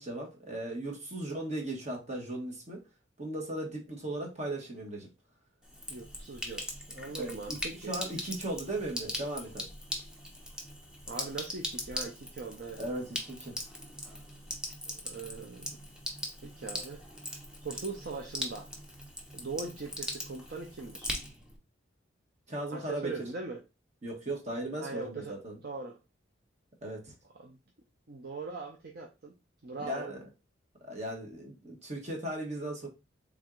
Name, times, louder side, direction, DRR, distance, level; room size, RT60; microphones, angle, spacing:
voice 1, 0.0-2.8 3.2-5.1 7.2-7.6 7.9-9.7 12.8-13.5 22.5-23.1 24.0-25.6 26.8-27.1 29.8-30.2 30.9-32.9, right 1 dB, 35° right, 1.3 m, -37 dB
Sink (filling or washing), 5.6-21.6, left 1 dB, 5° right, 0.7 m, -40 dB
voice 2, 5.9-8.0 11.1-12.8 14.3-14.4 15.0-15.7 16.4-17.0 17.6-18.7 19.3-21.1 22.7-23.6 24.8-25.3 25.6-26.0 27.4-27.6 28.1-29.4 29.6-30.1, right 3 dB, 50° right, 0.6 m, -41 dB
4.4 x 3.5 x 2.4 m
head